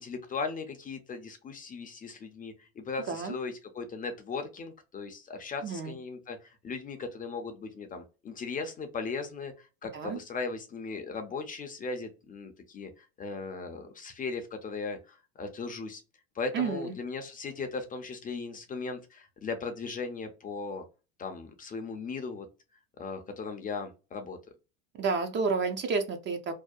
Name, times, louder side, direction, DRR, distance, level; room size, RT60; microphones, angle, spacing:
voice 1, 0.0-16.0 16.4-20.8 21.2-22.5 23.0-24.4, left 4 dB, 25° left, 0.4 m, -38 dB
voice 2, 5.6-6.0 9.9-10.2 16.5-16.9 24.9-26.5, right 4 dB, 35° right, 0.4 m, -30 dB
2.6 x 2.1 x 2.3 m
supercardioid pair, 100°, 34 cm